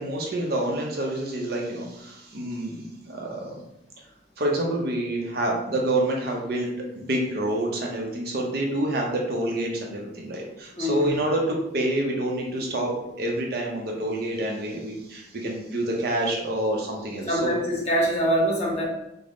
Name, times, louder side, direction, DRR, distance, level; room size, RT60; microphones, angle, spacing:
voice 1, 0.0-3.6 4.4-6.7 7.0-17.5, right 1 dB, 55° right, 0 dB, 0.6 m, -27 dB
voice 2, 10.7-11.2 17.3-18.8, equal, 35° left, -3 dB, 0.9 m, -24 dB
3.5 x 2.1 x 3.6 m, 0.86 s
head